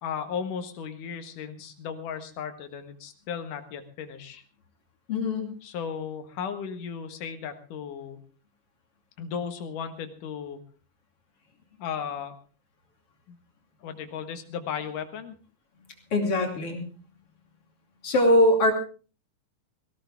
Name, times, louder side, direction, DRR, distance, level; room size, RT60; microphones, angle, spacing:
voice 1, 0.0-4.4 5.6-8.2 9.2-10.6 11.8-12.4 13.3-13.4 13.8-15.4, left 7 dB, 75° left, 8 dB, 3.1 m, -35 dB
voice 2, 5.1-5.5 16.1-16.8 18.0-18.7, left 1 dB, 45° left, 3 dB, 3.5 m, -22 dB
18.5 x 17.0 x 3.5 m, 0.37 s
omnidirectional pair, 3.7 m